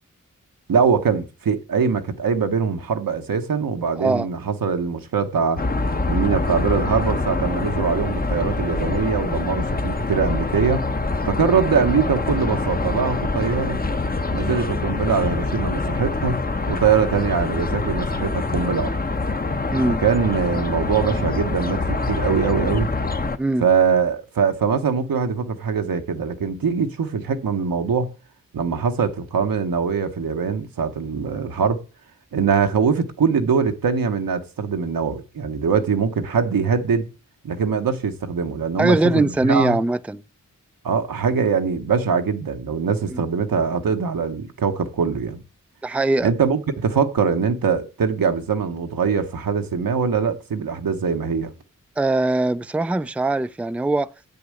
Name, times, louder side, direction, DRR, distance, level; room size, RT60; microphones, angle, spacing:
voice 1, 0.7-5.6 6.1-10.8 11.3-13.8 14.3-16.4 16.7-19.0 19.9-22.9 23.6-28.1 28.5-31.8 32.3-37.1 37.4-39.8 40.8-45.4 46.2-51.5, right 6 dB, 85° right, 1.1 m, -22 dB
voice 2, 4.0-4.3 19.7-20.0 23.4-23.6 38.8-40.2 43.1-43.2 45.8-46.3 52.0-54.1, right 2 dB, 5° right, 0.4 m, -21 dB
sound 1, 5.6-23.4, left 3 dB, 25° left, 0.8 m, -25 dB
8.0 x 6.8 x 7.7 m
cardioid pair, 40°, 34 cm